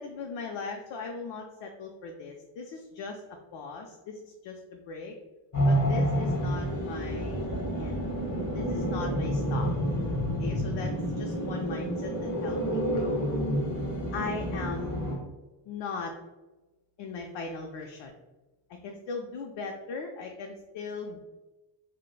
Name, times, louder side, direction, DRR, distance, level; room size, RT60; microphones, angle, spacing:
voice 1, 0.0-3.2 3.5-5.1 5.6-7.4 7.8-8.1 8.5-9.7 10.4-13.2 14.1-15.0 15.7-16.1 17.0-18.1 18.7-21.2, left 4 dB, 75° left, 2 dB, 0.5 m, -39 dB
sound 1, 5.5-15.2, equal, 40° left, 1.1 m, -29 dB
4.4 x 2.1 x 2.3 m, 1.1 s
cardioid pair, 110°, 45 cm